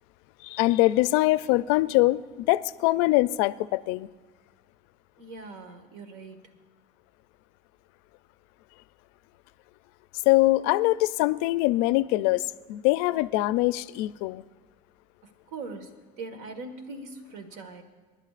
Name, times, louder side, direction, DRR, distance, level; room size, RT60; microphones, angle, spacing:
voice 1, 0.4-4.1 10.3-14.4, left 18 dB, 85° left, 17 dB, 0.4 m, -23 dB
voice 2, 5.2-6.5 15.2-17.8, right 3 dB, 75° right, 7 dB, 1.6 m, -41 dB
26.0 x 11.0 x 2.5 m, 1.4 s
cardioid pair, 135°, 18 cm